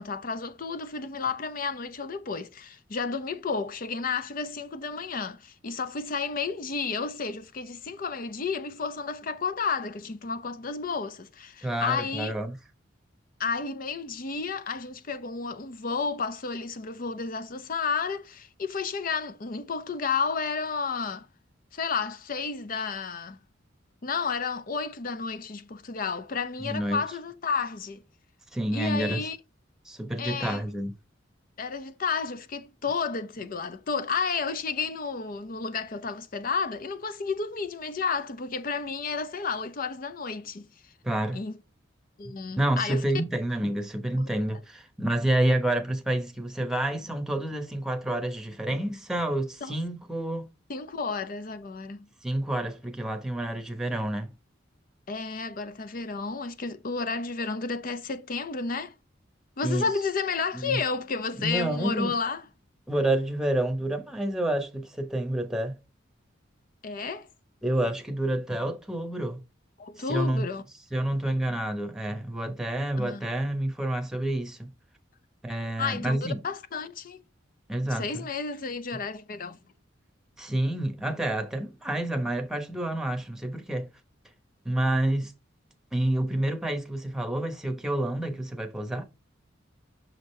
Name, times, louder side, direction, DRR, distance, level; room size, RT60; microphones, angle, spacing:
voice 1, 0.0-12.3 13.4-21.3 21.7-23.4 24.0-28.0 28.7-29.4 30.2-30.6 31.6-40.7 41.3-41.5 42.2-43.0 49.6-49.8 50.7-52.1 55.1-58.9 59.6-62.4 66.8-67.3 69.8-70.6 73.0-73.2 75.8-77.2 77.9-79.6, left 5 dB, 45° left, 0.5 m, -31 dB
voice 2, 11.6-12.6 26.6-27.0 28.5-29.2 29.8-30.9 41.0-41.4 42.6-50.5 52.2-54.3 59.6-59.8 60.5-60.8 61.4-62.1 62.9-65.7 67.6-69.4 70.0-70.5 70.9-74.7 75.4-76.4 77.7-78.2 80.4-83.9 84.6-85.3 85.9-89.1, right 1 dB, 5° right, 1.0 m, -28 dB
6.2 x 5.0 x 3.2 m
head